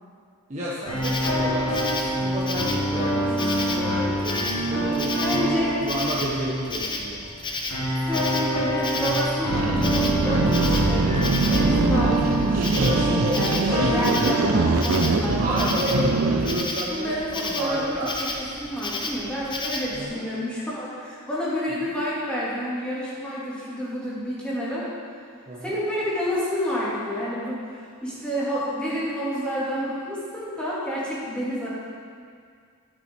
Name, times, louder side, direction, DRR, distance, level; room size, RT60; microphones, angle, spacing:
voice 1, 0.5-7.2 10.5-10.8 12.7-13.8 14.9-18.1 20.0-20.3 25.5-25.8, right 1 dB, 30° right, -9 dB, 1.2 m, -31 dB
sound 1, 0.8-6.7 7.7-15.1, right 1 dB, 70° left, 2.1 m, -26 dB
Insect, 0.9-20.0, left 2 dB, 20° left, 0.7 m, -33 dB
voice 2, 5.2-5.8 8.0-16.4 16.9-24.8 25.6-31.7, equal, 5° left, -9 dB, 2.4 m, -29 dB
sound 2, 9.5-16.7, right 3 dB, 70° right, 0.6 m, -23 dB
11.5 x 6.2 x 4.6 m, 2.2 s
head